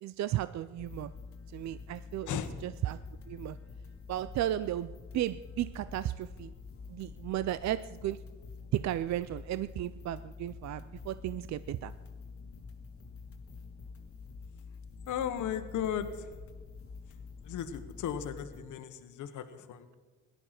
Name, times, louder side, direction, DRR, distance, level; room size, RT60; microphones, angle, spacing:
voice 1, 0.0-1.1 1.5-2.3 2.6-3.0 3.3-3.6 4.1-6.5 6.9-8.2 8.7-11.9, right 13 dB, 65° right, 16 dB, 0.5 m, -34 dB
sound 1, 0.8-18.6, left 4 dB, 50° left, 1.7 m, -47 dB
voice 2, 15.1-16.4 17.4-19.9, left 9 dB, 80° left, 9 dB, 1.3 m, -36 dB
17.5 x 11.5 x 5.9 m, 1.4 s
cardioid pair, 90°, 30 cm